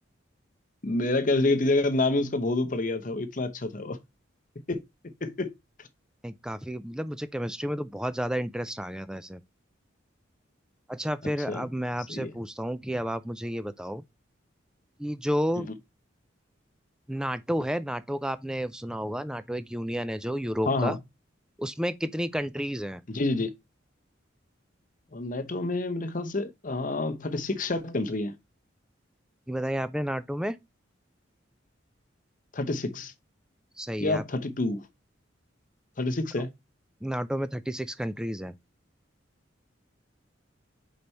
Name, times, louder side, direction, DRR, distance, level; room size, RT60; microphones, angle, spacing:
voice 1, 0.8-4.0 4.7-4.8 5.2-5.5 11.5-11.6 12.1-12.3 15.6-15.7 20.7-21.0 23.1-23.5 25.1-28.3 32.5-33.1 34.0-34.8 36.0-36.5, left 2 dB, 45° left, 0.8 m, -28 dB
voice 2, 6.2-9.4 10.9-14.0 15.0-15.7 17.1-21.0 21.6-23.0 29.5-30.6 33.8-34.2 37.0-38.5, equal, 5° right, 0.4 m, -31 dB
5.3 x 4.1 x 4.4 m
head